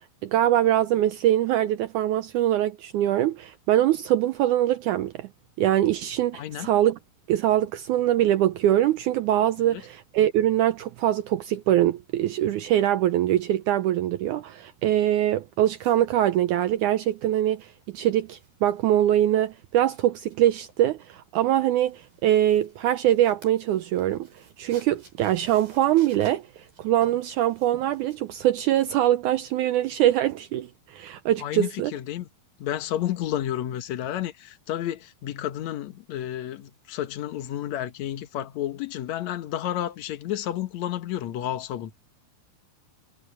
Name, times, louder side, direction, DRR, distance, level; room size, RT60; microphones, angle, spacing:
voice 1, 0.2-5.3 5.6-7.0 7.3-24.3 24.6-26.4 26.8-31.9, right 12 dB, 85° right, 1.7 m, -23 dB
voice 2, 6.3-6.7 9.6-9.8 31.4-32.3 32.6-41.9, left 12 dB, 60° left, 2.1 m, -31 dB
sound 1, 15.6-29.1, right 5 dB, 70° right, 9.7 m, -53 dB
omnidirectional pair, 4.3 m